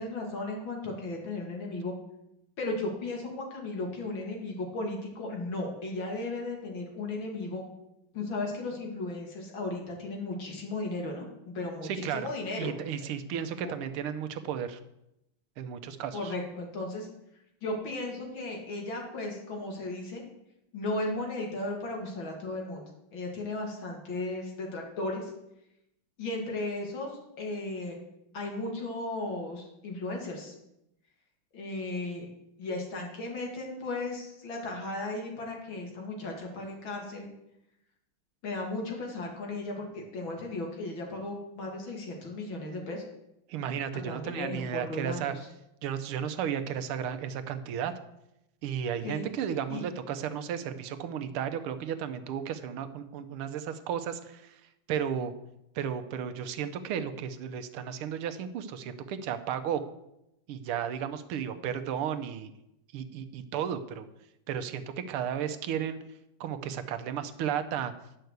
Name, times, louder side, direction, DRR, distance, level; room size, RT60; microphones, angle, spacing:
voice 1, 0.0-1.9 2.6-7.6 8.1-12.8 13.6-13.7 16.1-17.1 17.6-20.2 20.7-22.8 23.1-25.3 26.2-27.1 27.4-28.0 28.3-30.5 31.5-32.3 32.6-37.3 38.4-43.0 44.0-45.5 49.0-49.3 49.7-49.8, left 2 dB, 65° left, 1 dB, 2.9 m, -35 dB
voice 2, 11.8-12.3 12.6-14.8 15.6-16.3 43.5-45.3 45.8-47.9 48.6-54.6 54.9-55.3 55.7-59.8 60.5-62.5 62.9-64.1 64.5-66.0 66.4-67.9, right 8 dB, 85° right, 10 dB, 1.7 m, -34 dB
10.5 x 5.7 x 7.9 m, 0.86 s
omnidirectional pair, 2.3 m